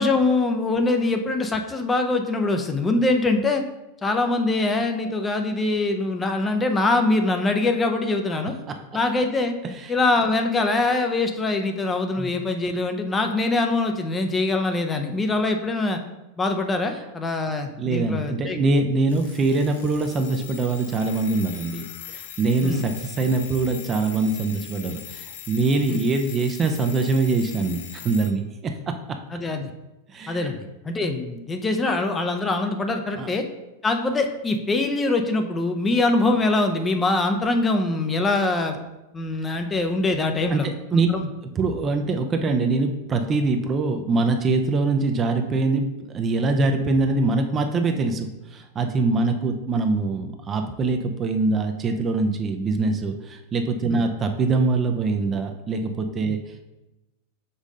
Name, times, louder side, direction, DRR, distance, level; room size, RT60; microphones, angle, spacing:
voice 1, 0.0-3.6 4.0-8.6 8.9-9.5 9.9-16.0 16.4-18.6 22.6-22.8 25.9-26.0 29.3-29.7 30.3-30.6 30.8-33.4 33.8-38.8 39.1-41.3 53.9-54.0, left 2 dB, 15° left, 5 dB, 0.6 m, -23 dB
voice 2, 17.8-28.9 30.1-30.5 33.2-33.3 40.5-41.1 41.6-56.4, right 3 dB, 25° right, 5 dB, 0.6 m, -23 dB
Alarm, 19.1-28.4, left 9 dB, 60° left, 0.5 m, -41 dB
5.4 x 3.6 x 5.2 m, 0.99 s
figure-of-eight pair, 90°, 0 cm